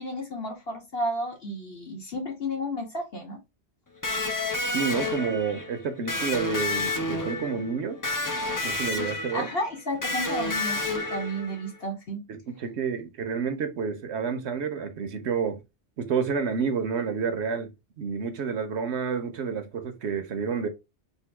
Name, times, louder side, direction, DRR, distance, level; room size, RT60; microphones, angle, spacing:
voice 1, 0.0-3.4 9.3-12.2, equal, 55° left, 1.8 m, -32 dB
Electric guitar, 4.0-11.7, left 2 dB, 25° left, 0.5 m, -30 dB
voice 2, 4.7-8.0 8.6-9.5 12.3-15.6 16.0-20.7, right 6 dB, 70° right, 1.0 m, -29 dB
3.7 x 2.6 x 4.6 m
omnidirectional pair, 1.2 m